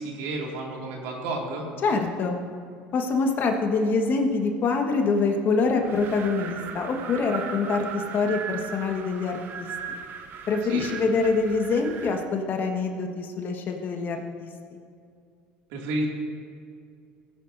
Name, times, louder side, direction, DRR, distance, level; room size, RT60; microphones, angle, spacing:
voice 1, 0.0-1.7 10.7-10.9 15.7-16.1, right 2 dB, 70° right, 0 dB, 2.3 m, -31 dB
voice 2, 1.8-2.4 2.9-9.7 10.5-14.5, left 4 dB, 45° left, 3 dB, 1.5 m, -25 dB
Wind, 5.8-12.3, right 7 dB, 50° right, 1.0 m, -38 dB
17.5 x 10.0 x 2.7 m, 2.3 s
hypercardioid pair, 85°, 5 cm